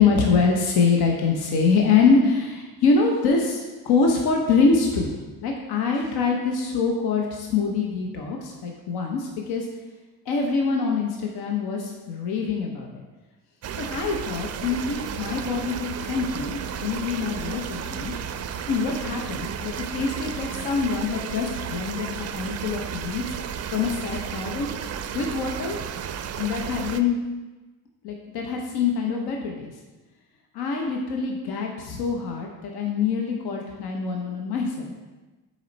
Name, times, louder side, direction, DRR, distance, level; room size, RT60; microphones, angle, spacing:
voice 1, 0.0-5.1 5.4-9.7 10.3-13.0 13.8-18.2 18.7-23.4 23.7-24.7 25.1-25.8 26.4-27.2 28.0-29.7 30.5-34.9, left 5 dB, 80° left, 1 dB, 0.9 m, -24 dB
sound 1, 13.6-27.0, right 8 dB, 45° right, 0.4 m, -33 dB
6.2 x 4.2 x 4.0 m, 1.2 s
cardioid pair, 90°, 38 cm